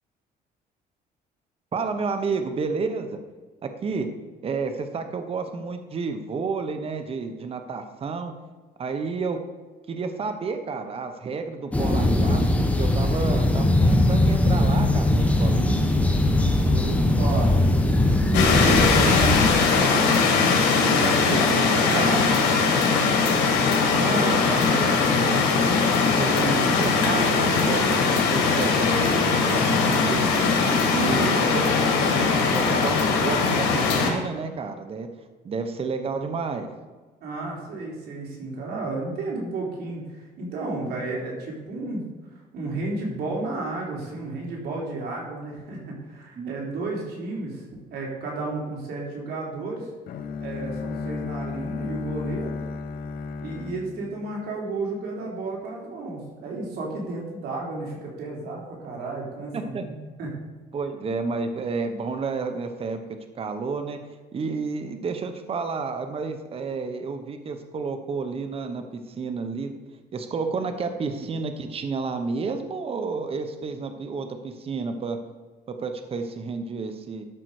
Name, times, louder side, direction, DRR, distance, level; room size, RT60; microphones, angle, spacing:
voice 1, 1.7-3.2 3.6-4.1 4.4-8.3 8.8-9.4 9.9-15.9 23.9-30.3 30.9-31.8 32.5-35.1 35.4-36.7 46.4-46.8 59.5-59.8 60.7-63.0 63.4-64.0 64.3-69.8 70.1-75.2 75.7-77.3, right 4 dB, 35° right, 8 dB, 1.0 m, -31 dB
sound 1, 11.7-19.5, left 1 dB, 10° left, 1.1 m, -20 dB
voice 2, 16.6-17.6 18.3-19.3 19.5-20.3 20.9-23.2 31.0-31.8 37.2-42.0 42.5-49.9 50.4-52.6 53.4-60.3, right 3 dB, 70° right, -2 dB, 3.5 m, -32 dB
sound 2, 18.3-34.1, left 4 dB, 90° left, 2.1 m, -20 dB
Bowed string instrument, 50.1-55.0, left 4 dB, 60° left, 0.8 m, -34 dB
12.5 x 5.7 x 4.9 m, 1.4 s
cardioid pair, 110°, 17 cm